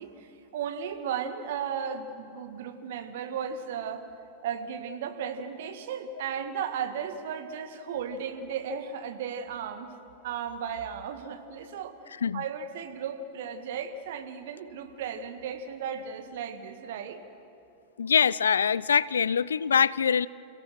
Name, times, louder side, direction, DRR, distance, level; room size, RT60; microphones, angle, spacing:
voice 1, 0.0-4.1 4.4-9.9 10.2-11.9 12.3-17.2, right 7 dB, 55° right, 7 dB, 1.8 m, -35 dB
voice 2, 18.0-20.3, left 7 dB, 70° left, 21 dB, 0.4 m, -24 dB
29.5 x 16.5 x 6.4 m, 2.7 s
figure-of-eight pair, 90°, 0 cm